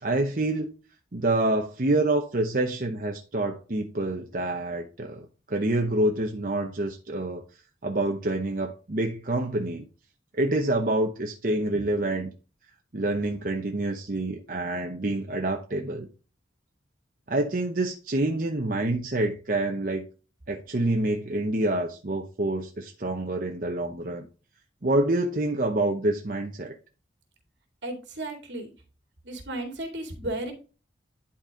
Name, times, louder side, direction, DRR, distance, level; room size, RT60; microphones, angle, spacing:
voice 1, 0.0-0.7 1.1-7.4 7.8-9.8 10.4-12.3 12.9-16.1 17.3-20.1 20.5-24.3 24.8-26.7, right 2 dB, 50° right, 0.9 m, -27 dB
voice 2, 27.8-28.7 29.2-30.5, right 1 dB, 80° right, 2.6 m, -34 dB
11.0 x 4.3 x 3.7 m
head